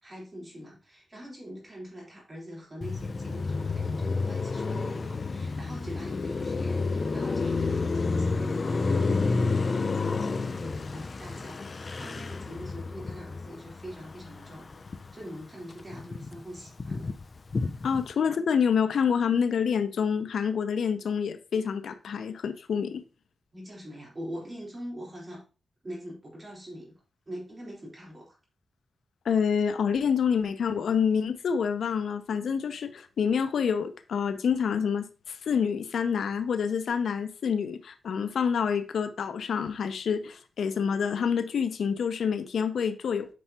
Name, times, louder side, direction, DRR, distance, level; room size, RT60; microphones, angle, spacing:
voice 1, 0.0-14.8 15.1-17.2 23.5-25.4 25.8-26.9 27.3-28.4, equal, 25° right, 3.6 m, -43 dB
Car passing by, 2.8-15.3 15.6-18.1, left 4 dB, 35° left, 0.4 m, -30 dB
voice 2, 17.8-23.0 29.2-43.3, left 7 dB, 85° left, 0.7 m, -27 dB
9.3 x 5.6 x 2.9 m
wide cardioid pair, 160°, 0 cm